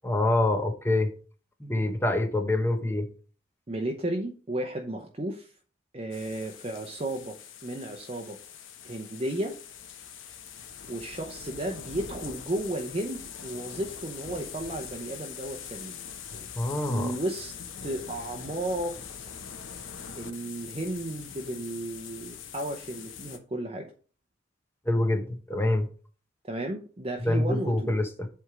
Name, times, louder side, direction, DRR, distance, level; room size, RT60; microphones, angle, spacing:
voice 1, 0.0-1.1 1.6-3.1 16.6-17.2 24.9-25.9 27.2-28.3, left 1 dB, 10° left, 0.8 m, -26 dB
voice 2, 3.7-5.5 5.9-7.4 7.6-8.4 8.8-9.6 10.9-16.0 16.9-17.5 17.8-19.0 20.1-23.9 26.4-27.9, right 1 dB, 30° right, 0.7 m, -33 dB
sound 1, 6.1-23.4, left 7 dB, 85° left, 0.9 m, -43 dB
7.9 x 3.5 x 5.9 m
head